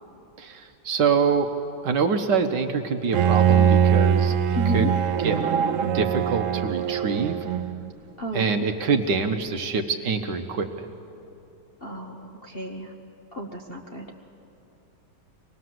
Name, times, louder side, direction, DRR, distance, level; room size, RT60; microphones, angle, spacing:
voice 1, 0.4-1.5 1.8-4.9 5.2-5.4 5.9-7.4 8.3-10.9, right 5 dB, 60° right, 6 dB, 1.4 m, -25 dB
Bowed string instrument, 3.1-7.9, right 8 dB, 80° right, 0.7 m, -22 dB
voice 2, 4.5-4.9 8.2-8.6 11.8-12.9 13.3-14.1, right 1 dB, 40° left, 0 dB, 0.9 m, -32 dB
24.0 x 19.5 x 7.7 m, 2.8 s
omnidirectional pair, 2.3 m